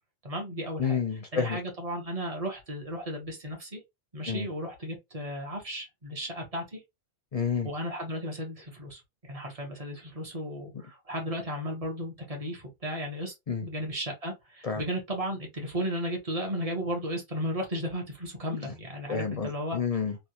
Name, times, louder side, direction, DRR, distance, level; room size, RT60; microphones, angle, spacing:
voice 1, 0.2-1.0 1.3-3.8 4.1-6.8 7.6-9.0 9.3-13.3 13.6-19.8, equal, 35° right, 1.2 m, -34 dB
voice 2, 0.8-1.6 4.3-4.5 7.3-7.7 13.5-13.7 14.6-14.8 19.1-20.2, left 6 dB, 45° left, 0.5 m, -29 dB
3.3 x 2.4 x 2.8 m
omnidirectional pair, 1.1 m